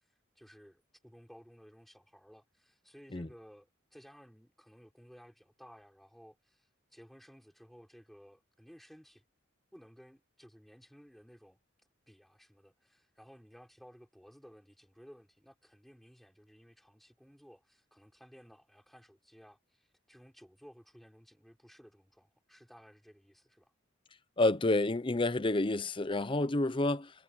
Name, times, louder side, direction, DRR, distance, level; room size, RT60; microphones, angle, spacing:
voice 1, 0.3-9.2 9.7-11.6 12.1-23.7, equal, ahead, 4.7 m, -57 dB
voice 2, 24.4-27.1, left 2 dB, 25° left, 0.7 m, -29 dB
head